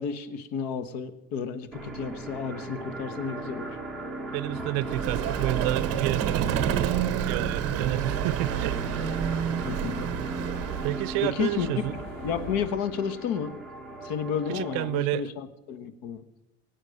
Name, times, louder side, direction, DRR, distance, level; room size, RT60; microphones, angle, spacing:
voice 1, 0.0-3.7 9.6-10.3 11.2-11.7 12.2-13.5 14.0-16.2, left 7 dB, 65° left, 1.5 m, -32 dB
sound 1, 1.7-15.0, right 2 dB, ahead, 1.7 m, -37 dB
voice 2, 4.3-6.5 6.8-6.9 7.2-9.5 10.8-12.0 14.5-15.2, right 17 dB, 75° right, 0.6 m, -30 dB
sound 2, 4.4-12.7, left 2 dB, 50° left, 4.8 m, -45 dB
Vehicle, 4.9-11.3, right 10 dB, 40° right, 1.1 m, -29 dB
22.5 x 8.7 x 6.6 m
cardioid pair, 155°, 37 cm